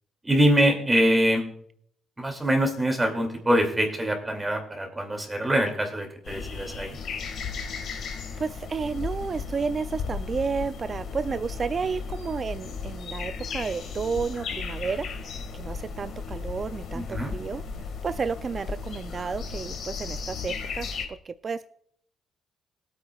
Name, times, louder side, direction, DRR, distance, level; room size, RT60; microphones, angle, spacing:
voice 1, 0.2-1.5 2.2-7.0 16.9-17.4, equal, 15° right, 3 dB, 2.5 m, -24 dB
sound 1, 6.2-21.1, left 5 dB, 70° left, 1.8 m, -35 dB
voice 2, 7.9-21.7, right 5 dB, 40° right, 11 dB, 0.4 m, -32 dB
19.5 x 8.7 x 2.4 m, 0.65 s
cardioid pair, 90°, 0 cm